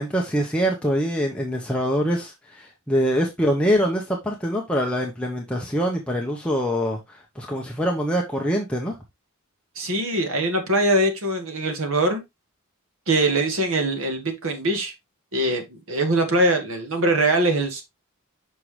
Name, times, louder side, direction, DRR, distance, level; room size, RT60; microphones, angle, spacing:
voice 1, 0.0-8.9, equal, 5° left, 0.8 m, -24 dB
voice 2, 9.8-12.2 13.1-14.9 15.3-17.8, right 1 dB, 75° right, 1.8 m, -22 dB
6.0 x 5.7 x 3.2 m
head